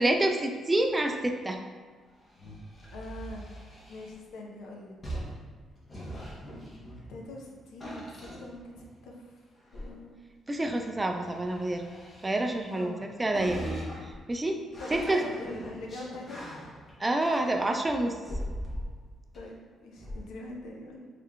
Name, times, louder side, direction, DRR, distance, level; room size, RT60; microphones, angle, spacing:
voice 1, 0.0-1.6 10.5-11.8 12.2-13.6 14.3-14.6 14.9-15.2 17.0-18.2, right 1 dB, 20° right, 4 dB, 0.3 m, -27 dB
sound 1, 2.2-4.2 5.0-7.4 7.8-9.1 9.6-9.9 10.9-13.0 13.3-17.8 18.3-19.0 19.3-19.4 19.9-20.2, equal, 35° left, 1.0 m, -41 dB
voice 2, 2.9-3.5 3.9-4.9 7.1-9.3 9.7-10.2 12.7-13.4 14.8-16.5 19.3-21.1, left 1 dB, 85° left, 0 dB, 0.6 m, -43 dB
3.6 x 3.2 x 2.3 m, 1.5 s
cardioid pair, 90°, 0 cm